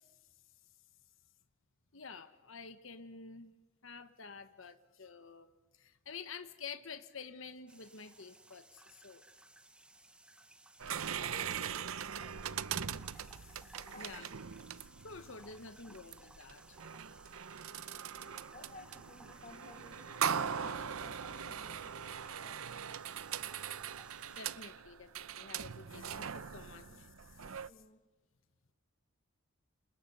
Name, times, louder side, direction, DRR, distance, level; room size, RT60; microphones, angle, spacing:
voice 1, 1.9-3.5 3.8-9.2 13.2-14.3 14.8-16.8 24.3-27.1 27.5-27.6, left 5 dB, 65° left, 1.2 m, -50 dB
sound 1, 7.7-24.4, right 1 dB, 5° right, 0.9 m, -60 dB
sound 2, 10.8-27.7, right 7 dB, 80° right, 0.7 m, -41 dB
voice 2, 11.2-13.2 13.9-14.8 17.7-18.1 18.5-23.0 26.5-27.1 27.4-28.1, left 2 dB, 35° left, 1.6 m, -58 dB
29.5 x 29.0 x 5.6 m
head